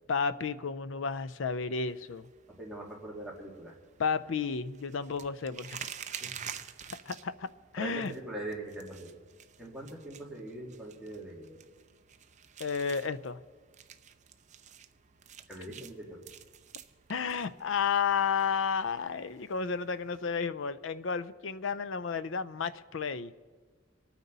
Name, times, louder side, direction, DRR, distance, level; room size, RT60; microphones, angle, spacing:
voice 1, 0.1-2.3 4.0-5.8 6.9-7.5 7.7-8.1 12.6-13.4 17.1-23.3, left 6 dB, 70° left, 15 dB, 0.5 m, -32 dB
sound 1, 1.9-20.4, right 8 dB, 35° right, 0.6 m, -49 dB
voice 2, 2.5-3.7 6.2-6.3 7.8-9.1 9.6-11.6 15.5-16.2, right 1 dB, 5° right, -4 dB, 2.6 m, -42 dB
26.0 x 9.3 x 4.0 m, 1.5 s
head